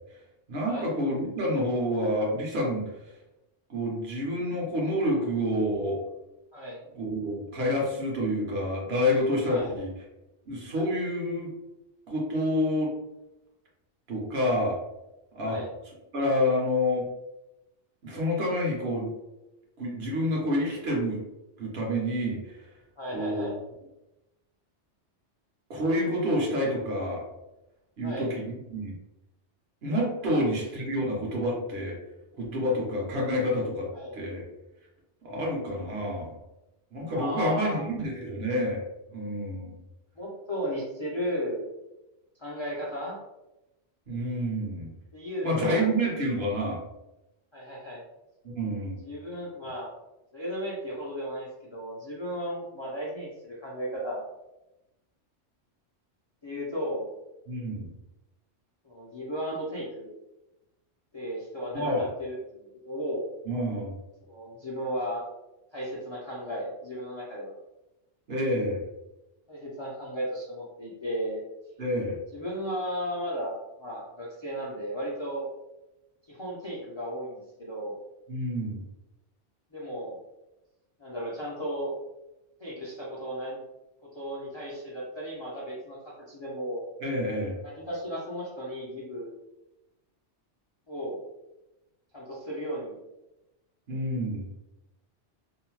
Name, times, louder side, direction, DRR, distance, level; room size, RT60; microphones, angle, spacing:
voice 1, 0.5-2.8 3.7-6.0 7.0-9.9 10.5-11.5 12.1-12.9 14.1-14.8 15.3-15.6 16.1-17.1 18.0-19.1 19.8-21.2 21.6-22.6 23.1-23.5 25.7-27.3 28.0-28.9 29.8-32.0 32.4-34.4 35.2-36.4 36.9-38.8 39.1-39.7 44.1-44.9 45.4-46.8 48.4-49.0 57.5-57.9 61.7-62.0 63.5-63.9 68.3-68.8 71.8-72.2 78.3-78.8 87.0-87.6 93.9-94.5, equal, 65° right, -2 dB, 1.0 m, -28 dB
voice 2, 23.0-23.6 28.0-28.3 30.2-30.4 33.9-34.2 37.1-37.9 40.2-41.7 42.4-43.2 45.1-45.9 47.5-48.0 49.0-49.9 50.3-54.3 56.4-57.1 58.8-60.1 61.1-63.2 64.2-65.2 65.7-67.6 69.5-71.4 72.3-75.5 76.3-77.9 79.7-80.2 81.0-81.9 82.6-83.6 84.0-86.8 87.6-89.3 90.9-91.2 92.1-92.9, equal, 45° left, -6 dB, 0.3 m, -35 dB
2.7 x 2.0 x 3.0 m, 0.95 s
omnidirectional pair, 1.2 m